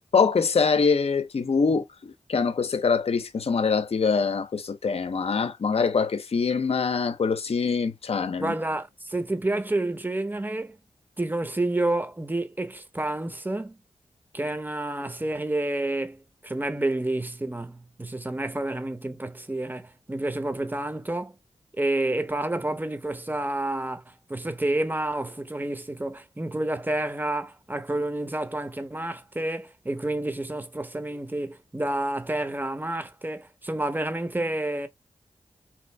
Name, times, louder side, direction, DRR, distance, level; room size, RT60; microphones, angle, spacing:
voice 1, 0.0-8.5, left 5 dB, 60° left, 0.6 m, -24 dB
voice 2, 8.4-10.8 11.2-13.8 14.3-21.3 21.8-34.9, right 2 dB, 15° right, 0.7 m, -29 dB
3.0 x 2.5 x 3.2 m
cardioid pair, 55°, 12 cm